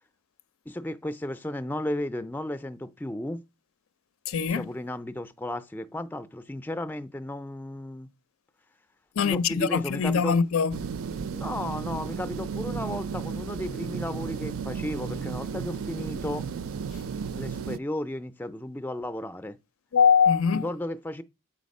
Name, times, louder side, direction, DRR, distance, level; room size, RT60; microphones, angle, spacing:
voice 1, 0.7-3.4 4.5-8.1 9.2-10.4 11.3-16.5 17.4-19.6 20.5-21.2, left 1 dB, 10° left, 0.3 m, -34 dB
voice 2, 4.3-4.7 9.2-10.9 19.9-20.7, left 6 dB, 80° left, 0.5 m, -22 dB
sound 1, 10.7-17.8, right 6 dB, 80° right, 0.4 m, -34 dB
7.6 x 4.1 x 5.3 m
head